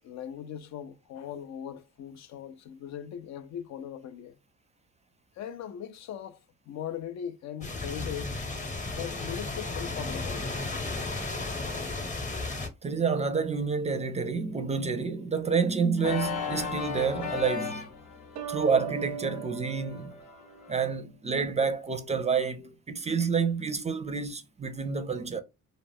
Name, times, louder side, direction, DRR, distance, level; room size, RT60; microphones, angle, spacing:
voice 1, 0.0-4.4 5.4-6.4 6.7-8.4 8.9-10.4 11.3-11.4, left 9 dB, 65° left, 0.4 m, -39 dB
sound 1, 7.6-12.7, left 3 dB, 25° left, 0.8 m, -34 dB
voice 2, 12.8-17.9 18.5-20.1 20.7-25.4, right 5 dB, 20° right, 0.4 m, -29 dB
Organ, 16.0-20.8, left 6 dB, 80° left, 0.9 m, -37 dB
sound 2, 18.4-21.0, right 10 dB, 85° right, 0.5 m, -39 dB
2.3 x 2.1 x 3.4 m
cardioid pair, 90°, 30 cm